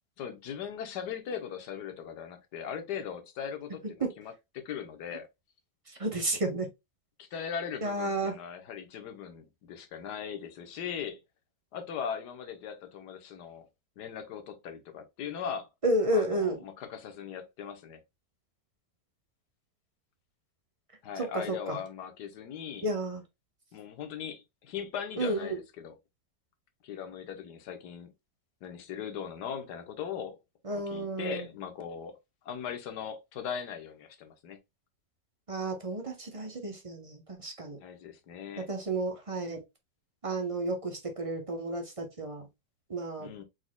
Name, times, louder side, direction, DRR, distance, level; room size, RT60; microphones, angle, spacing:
voice 1, 0.2-5.3 7.2-11.2 11.7-13.7 14.0-15.7 16.1-18.0 21.0-22.8 23.7-25.9 26.8-28.1 28.6-30.4 30.7-32.2 32.4-34.6 37.8-38.7 43.2-43.4, left 7 dB, 70° left, 1.4 m, -39 dB
voice 2, 5.9-6.7 7.8-8.4 15.8-16.6 21.2-21.8 22.8-23.2 25.2-25.6 30.6-31.5 35.5-37.8 38.6-39.6 40.2-42.5 42.9-43.3, right 2 dB, 30° right, 0.6 m, -32 dB
4.7 x 4.0 x 2.2 m
omnidirectional pair, 1.9 m